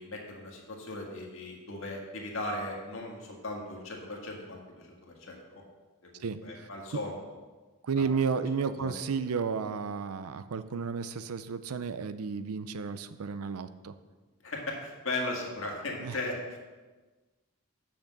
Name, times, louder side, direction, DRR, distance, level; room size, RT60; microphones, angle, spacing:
voice 1, 0.0-5.6 6.1-7.2 8.0-8.1 8.7-8.9 14.4-16.6, left 2 dB, 65° left, -1 dB, 1.8 m, -37 dB
voice 2, 6.2-7.0 7.8-13.9 16.0-16.2, right 5 dB, 90° right, 12 dB, 0.5 m, -33 dB
6.5 x 5.9 x 7.3 m, 1.3 s
head